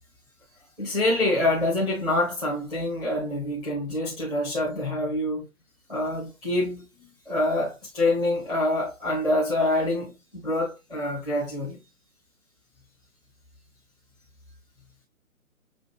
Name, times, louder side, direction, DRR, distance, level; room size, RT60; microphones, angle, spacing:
voice 1, 0.8-5.4 5.9-11.8, left 2 dB, 5° right, 1.0 m, -26 dB
7.2 x 2.6 x 2.7 m
figure-of-eight pair, 140°, 43 cm